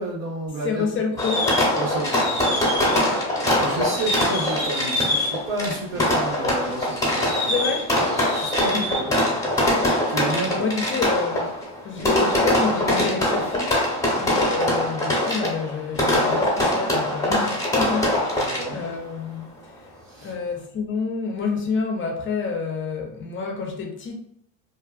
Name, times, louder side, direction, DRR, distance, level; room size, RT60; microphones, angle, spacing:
voice 1, 0.0-0.8 1.7-2.6 3.5-7.5 8.1-9.4 10.1-10.7 18.4-18.8 20.1-20.3, right 2 dB, 90° right, 1.4 m, -31 dB
voice 2, 0.6-1.5 3.0-3.2 3.5-3.8 7.5-8.0 8.7-9.0 10.5-11.5 11.8-13.8 14.1-19.5 19.8-19.9 20.2-24.2, left 5 dB, 30° left, 0.5 m, -28 dB
Fireworks, 1.2-18.9, left 1 dB, 10° left, 0.8 m, -23 dB
2.6 x 2.4 x 2.3 m
cardioid pair, 125°, 40 cm